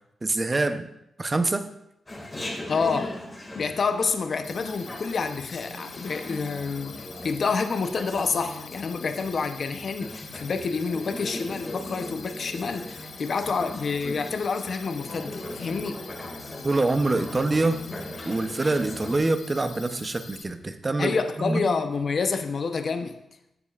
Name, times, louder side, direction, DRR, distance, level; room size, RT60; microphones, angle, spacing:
voice 1, 0.2-0.9 1.2-1.7 16.6-17.8 18.3-21.1 21.4-21.7, right 2 dB, 30° right, 9 dB, 0.7 m, -25 dB
Chatter, 2.1-19.2, left 1 dB, 25° left, 2.0 m, -39 dB
voice 2, 2.7-3.2 3.5-16.0 21.0-23.2, left 5 dB, 55° left, 8 dB, 0.7 m, -28 dB
sound 1, 4.4-20.4, left 5 dB, 85° left, 1.0 m, -45 dB
13.0 x 8.5 x 2.4 m, 0.82 s
cardioid pair, 100°, 0 cm